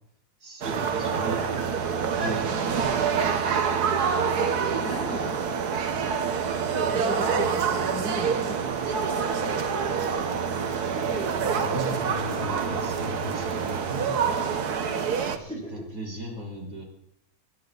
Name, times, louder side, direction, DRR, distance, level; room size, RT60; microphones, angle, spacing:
voice 1, 0.4-1.4 2.0-2.8 9.3-9.5 9.8-14.1 15.1-16.8, equal, 35° right, -1 dB, 4.8 m, -38 dB
sound 1, 0.6-15.4, right 6 dB, 55° right, 1.5 m, -26 dB
voice 2, 4.8-5.4 6.9-8.8 10.9-11.3 15.5-15.7, equal, 5° left, -7 dB, 7.9 m, -35 dB
25.5 x 11.0 x 4.1 m, 0.74 s
omnidirectional pair, 2.2 m